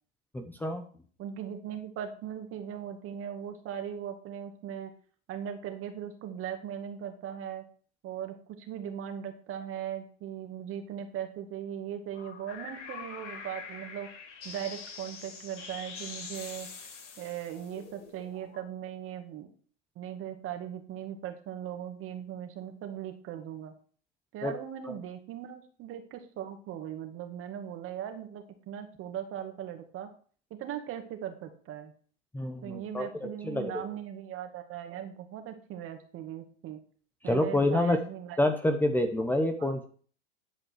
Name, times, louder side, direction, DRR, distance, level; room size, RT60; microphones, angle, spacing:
voice 1, 0.3-0.8 24.4-24.5 32.3-33.1 33.4-33.8 37.2-38.0 38.4-39.9, left 1 dB, 5° left, 6 dB, 1.0 m, -27 dB
voice 2, 1.2-4.9 5.3-7.6 8.0-16.7 17.2-19.5 20.0-23.7 24.3-30.1 30.5-31.9 32.6-36.8 37.2-38.4 39.6-39.7, right 9 dB, 40° right, 6 dB, 2.2 m, -39 dB
sound 1, 12.1-18.6, left 5 dB, 85° left, 6.5 m, -44 dB
11.0 x 5.2 x 6.5 m, 0.44 s
hypercardioid pair, 120°, 35 cm